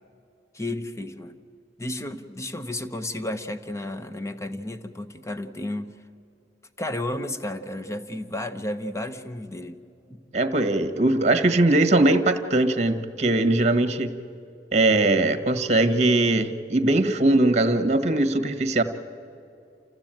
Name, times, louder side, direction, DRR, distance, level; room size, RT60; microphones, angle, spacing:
voice 1, 0.5-1.4 1.8-5.9 6.8-9.8 10.1-10.2, left 1 dB, 15° left, 9 dB, 1.0 m, -32 dB
voice 2, 10.3-14.1 14.7-18.8, right 2 dB, 40° right, 11 dB, 1.3 m, -20 dB
28.0 x 15.0 x 9.0 m, 2.6 s
head